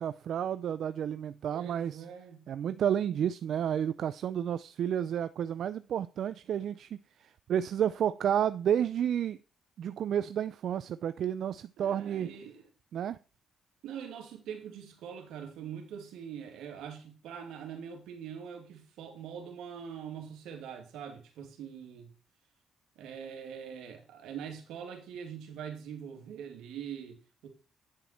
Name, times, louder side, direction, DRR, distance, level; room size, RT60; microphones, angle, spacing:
voice 1, 0.0-2.0 2.5-6.9 7.2-9.4 9.8-12.3 12.9-13.2, right 9 dB, 65° right, 0.4 m, -31 dB
voice 2, 1.5-2.4 11.8-12.6 13.8-22.1 23.0-27.5, right 8 dB, 85° right, 2.4 m, -43 dB
9.4 x 7.7 x 4.4 m
cardioid pair, 90°, 0 cm